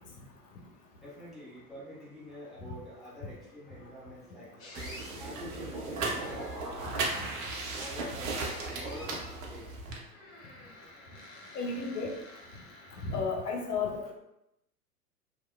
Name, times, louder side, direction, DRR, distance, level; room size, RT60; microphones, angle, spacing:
voice 1, 1.0-7.1 7.7-9.6, equal, ahead, -10 dB, 0.8 m, -47 dB
sound 1, 4.6-5.1 6.1-6.9 8.4-9.3 10.1-13.6, left 1 dB, 40° left, 0.8 m, -50 dB
sound 2, 4.7-10.0, right 3 dB, 55° right, 0.7 m, -37 dB
sound 3, 4.8-8.4, right 2 dB, 25° right, 0.4 m, -41 dB
voice 2, 11.5-12.2 13.0-14.1, left 4 dB, 75° left, 1 dB, 0.7 m, -32 dB
2.7 x 2.0 x 2.2 m, 0.85 s
figure-of-eight pair, 95°, 48 cm